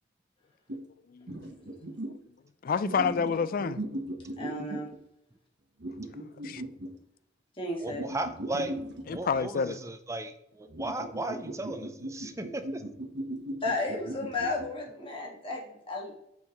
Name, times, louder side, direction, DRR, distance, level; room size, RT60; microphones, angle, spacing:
sound 1, 0.7-0.8 1.3-2.2 2.8-5.0 5.8-6.9 7.9-9.6 10.7-14.7, right 1 dB, 65° right, 1.1 m, -38 dB
voice 1, 2.6-3.8 6.4-6.6 9.1-9.8, left 5 dB, 50° left, 0.4 m, -28 dB
voice 2, 4.4-4.9 7.6-8.1 13.6-16.1, left 2 dB, 30° left, 1.7 m, -33 dB
voice 3, 7.8-8.8 9.1-12.8, right 2 dB, 15° right, 0.5 m, -36 dB
6.8 x 5.2 x 3.0 m
head